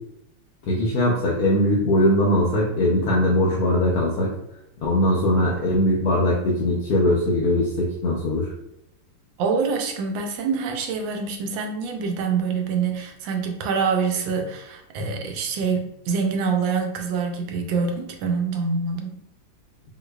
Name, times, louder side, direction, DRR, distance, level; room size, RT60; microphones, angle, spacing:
voice 1, 0.7-4.4 4.8-8.5, left 1 dB, 70° left, -3 dB, 0.9 m, -21 dB
voice 2, 9.4-19.2, right 5 dB, 80° right, 4 dB, 1.3 m, -25 dB
3.8 x 2.8 x 2.3 m, 0.80 s
omnidirectional pair, 2.1 m